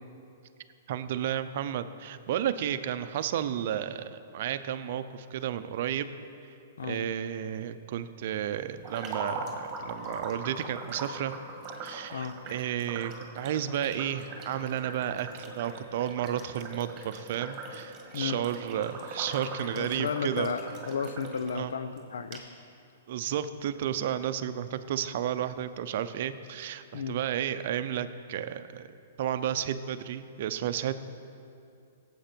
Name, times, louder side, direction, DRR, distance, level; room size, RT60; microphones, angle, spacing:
voice 1, 0.9-6.1 6.8-11.3 11.8-20.5 21.5-21.7 23.1-28.9 29.2-30.9, right 10 dB, 55° right, 11 dB, 0.6 m, -32 dB
sound 1, 8.8-21.6 22.0-22.1 22.3-22.4, right 3 dB, 25° right, 1.7 m, -41 dB
voice 2, 19.8-22.4 26.9-27.2, left 6 dB, 85° left, 11 dB, 0.7 m, -33 dB
16.5 x 8.0 x 4.5 m, 2.6 s
hypercardioid pair, 145°, 0 cm